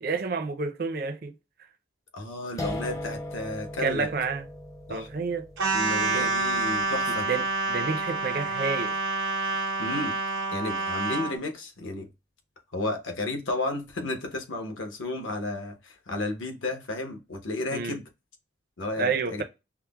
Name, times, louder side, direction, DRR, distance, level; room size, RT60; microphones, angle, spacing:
voice 1, 0.0-1.3 3.8-4.5 4.9-5.5 6.1-6.3 7.1-8.9 17.7-18.0 19.0-19.4, right 4 dB, 50° right, 0.5 m, -29 dB
voice 2, 2.1-4.1 4.9-5.1 5.7-7.3 9.8-10.1 10.5-12.1 12.7-18.0 18.8-19.4, left 2 dB, 80° left, 0.9 m, -32 dB
sound 1, 2.6-9.5, left 1 dB, 15° left, 0.3 m, -40 dB
sound 2, 5.6-11.4, right 3 dB, 80° right, 1.0 m, -28 dB
5.7 x 2.0 x 2.3 m
head